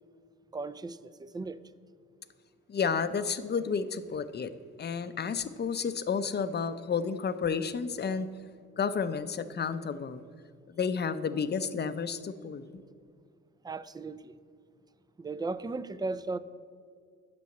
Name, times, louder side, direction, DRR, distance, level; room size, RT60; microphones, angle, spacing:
voice 1, 0.5-1.6 13.6-14.3 15.2-16.4, right 3 dB, 15° right, 0.4 m, -36 dB
voice 2, 2.7-4.5 4.8-8.3 8.8-10.2 10.8-12.8, left 6 dB, 35° left, 0.6 m, -31 dB
8.4 x 6.2 x 7.7 m
cardioid pair, 90°, 30 cm